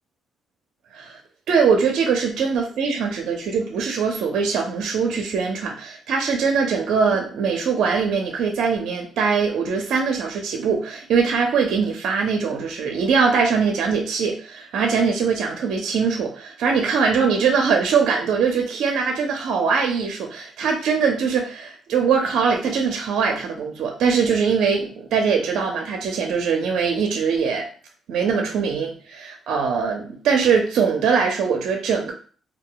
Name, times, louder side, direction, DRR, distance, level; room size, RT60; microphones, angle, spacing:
voice 1, 1.5-27.7 28.1-32.1, right 5 dB, 75° right, 3 dB, 0.5 m, -22 dB
2.3 x 2.2 x 3.7 m, 0.41 s
cardioid pair, 90°, 0 cm